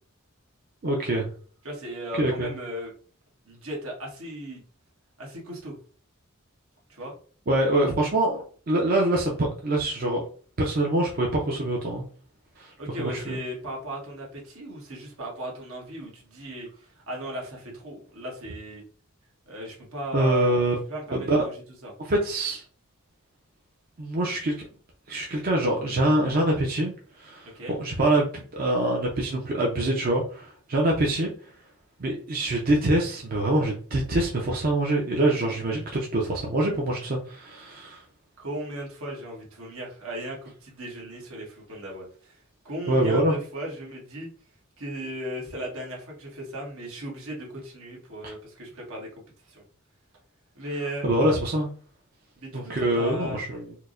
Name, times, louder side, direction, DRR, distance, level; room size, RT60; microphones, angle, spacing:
voice 1, 0.8-1.3 2.2-2.5 7.5-10.2 10.6-12.0 12.6-13.4 20.1-20.7 21.1-21.4 22.0-22.6 24.0-24.7 25.1-26.9 27.2-31.3 32.0-38.0 42.9-43.3 48.2-48.3 51.0-51.7 52.5-53.7, right 1 dB, 45° right, -1 dB, 0.5 m, -25 dB
voice 2, 1.6-2.9 3.4-4.6 5.2-5.8 6.9-7.1 12.8-18.8 19.5-20.6 20.9-21.5 21.8-21.9 27.4-27.8 38.4-42.4 42.6-44.3 44.8-49.1 49.4-49.6 50.5-51.1 52.3-53.4, right 1 dB, 80° right, -2 dB, 1.3 m, -36 dB
4.5 x 2.0 x 2.5 m, 0.42 s
head